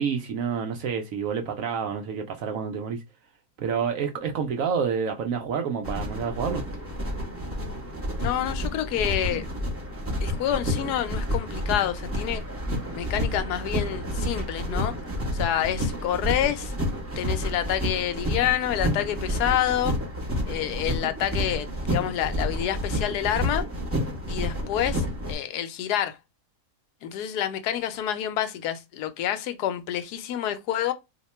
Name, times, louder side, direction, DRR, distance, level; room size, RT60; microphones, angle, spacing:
voice 1, 0.0-3.0 3.6-6.6, right 6 dB, 70° right, 0.8 m, -28 dB
sound 1, 5.8-25.4, equal, 15° right, 0.6 m, -30 dB
voice 2, 8.2-9.4 10.2-12.4 12.9-14.9 15.3-16.7 17.1-20.0 20.5-23.6 24.3-26.2 27.0-30.9, left 11 dB, 80° left, 1.1 m, -28 dB
2.8 x 2.2 x 4.1 m
omnidirectional pair, 1.7 m